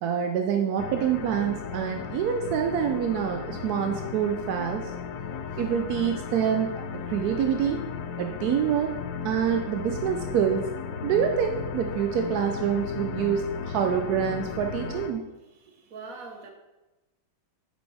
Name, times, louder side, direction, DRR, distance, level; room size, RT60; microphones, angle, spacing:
voice 1, 0.0-4.9 5.6-7.8 8.2-8.9 9.2-10.6 11.0-15.3, right 8 dB, 75° right, 4 dB, 0.9 m, -26 dB
sound 1, 0.8-15.1, left 6 dB, 70° left, 1.0 m, -35 dB
voice 2, 15.5-16.5, right 4 dB, 55° right, 3 dB, 1.2 m, -43 dB
7.8 x 5.2 x 3.3 m, 1.1 s
omnidirectional pair, 2.1 m